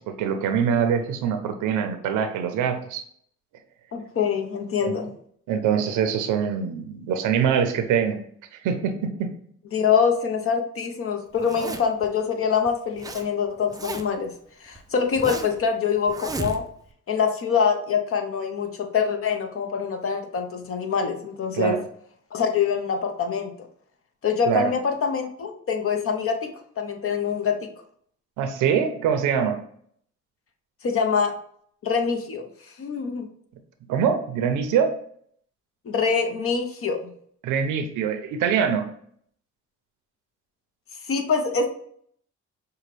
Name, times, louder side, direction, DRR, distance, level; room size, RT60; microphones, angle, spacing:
voice 1, 0.1-3.0 4.8-4.9 5.5-8.2 8.5-9.3 21.6-21.8 24.5-24.7 28.4-29.6 33.9-34.9 37.4-38.9, right 7 dB, 90° right, 7 dB, 0.7 m, -24 dB
voice 2, 3.9-5.1 9.7-14.3 14.6-16.6 17.1-21.8 22.3-23.5 24.2-26.5 26.8-27.5 30.8-31.3 31.8-33.3 35.8-37.0 41.0-41.7, left 6 dB, 45° left, 5 dB, 0.8 m, -24 dB
Zipper (clothing), 11.4-12.1 12.7-13.3 13.5-14.3 14.7-15.6 16.1-16.9, right 3 dB, 15° right, 0.4 m, -34 dB
5.5 x 2.2 x 3.3 m, 0.63 s
cardioid pair, 90°, 30 cm